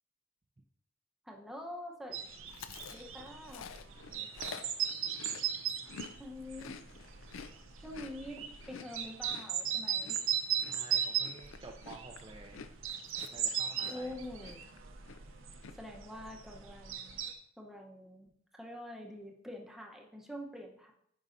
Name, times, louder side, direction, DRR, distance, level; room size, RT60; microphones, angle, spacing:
voice 1, 1.3-2.2 2.9-3.7 6.2-6.7 7.8-10.2 13.9-14.7 15.8-17.2 17.6-18.3 18.6-20.9, left 1 dB, ahead, 0 dB, 0.8 m, -46 dB
sound 1, 2.1-17.3, right 9 dB, 75° right, 0.7 m, -37 dB
Chewing mastication, 2.5-6.1 6.4-14.1 14.4-14.8 15.0-15.7, left 6 dB, 80° left, 0.4 m, -49 dB
voice 2, 4.1-4.6 10.6-12.6 13.3-14.1, right 3 dB, 25° right, 0 dB, 0.4 m, -51 dB
8.9 x 5.4 x 2.6 m, 0.68 s
head